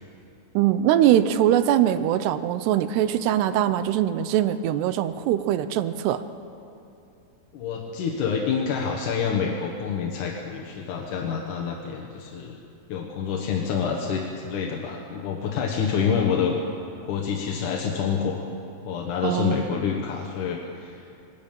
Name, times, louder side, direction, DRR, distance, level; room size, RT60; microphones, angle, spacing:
voice 1, 0.5-6.2 19.2-19.9, right 11 dB, 80° right, 12 dB, 2.5 m, -22 dB
voice 2, 7.5-12.6 12.9-16.5 17.1-18.5 18.9-21.2, left 6 dB, 65° left, 0 dB, 2.2 m, -27 dB
21.0 x 14.0 x 9.0 m, 2.7 s
omnidirectional pair, 5.2 m